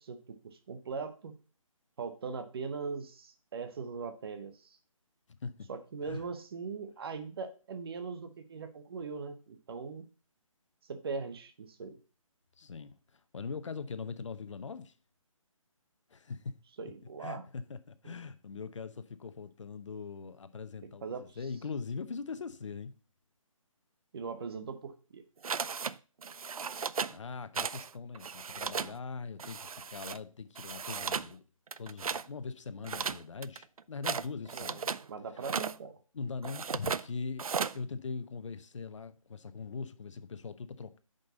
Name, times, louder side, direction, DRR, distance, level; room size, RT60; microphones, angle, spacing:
voice 1, 0.0-1.3 2.0-4.8 5.7-10.1 10.9-12.0 16.8-17.4 18.0-18.1 21.0-21.3 24.1-25.2 34.5-34.8 35.1-36.0, right 5 dB, 45° right, 1.0 m, -40 dB
voice 2, 12.6-14.9 16.1-16.5 17.2-22.9 27.1-31.5 31.8-34.9 36.1-37.5 37.7-41.0, left 5 dB, 60° left, 0.8 m, -41 dB
sound 1, 25.4-25.9 26.2-27.2 27.5-27.9 28.1-28.9 29.4-30.2 30.6-31.3 31.7-32.3 32.8-35.0 35.4-35.8 36.4-37.0 37.4-37.8, right 6 dB, 85° right, 0.4 m, -35 dB
7.6 x 5.3 x 4.1 m
figure-of-eight pair, 155°, 18 cm